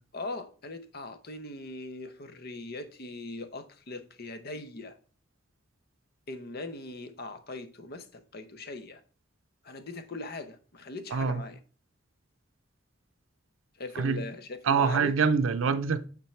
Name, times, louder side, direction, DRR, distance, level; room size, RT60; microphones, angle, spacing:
voice 1, 0.1-4.9 6.3-9.0 9.6-11.6 13.8-15.1, left 2 dB, 50° left, 0.8 m, -40 dB
voice 2, 11.1-11.4 14.0-14.2 14.7-16.1, right 5 dB, 75° right, 0.5 m, -25 dB
8.8 x 3.8 x 4.4 m
head